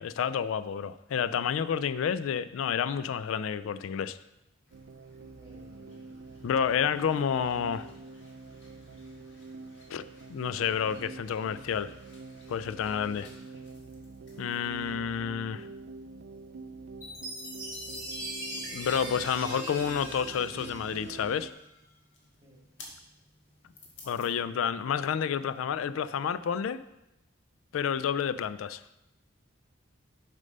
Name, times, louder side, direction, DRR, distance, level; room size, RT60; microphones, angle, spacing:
voice 1, 0.0-4.2 6.4-7.9 9.9-10.0 10.3-11.9 12.5-13.3 14.4-15.7 18.7-21.5 24.0-26.8 27.7-28.8, left 7 dB, 90° left, 15 dB, 0.3 m, -30 dB
sound 1, 4.6-24.3, left 2 dB, 65° left, 1.6 m, -58 dB
sound 2, 4.7-21.5, right 3 dB, 75° right, 0.4 m, -46 dB
voice 2, 5.3-6.4 22.4-22.6, right 1 dB, 20° right, -2 dB, 1.7 m, -58 dB
Chime, 17.0-21.6, equal, 15° left, 1.7 m, -40 dB
6.6 x 5.2 x 5.3 m, 0.91 s
head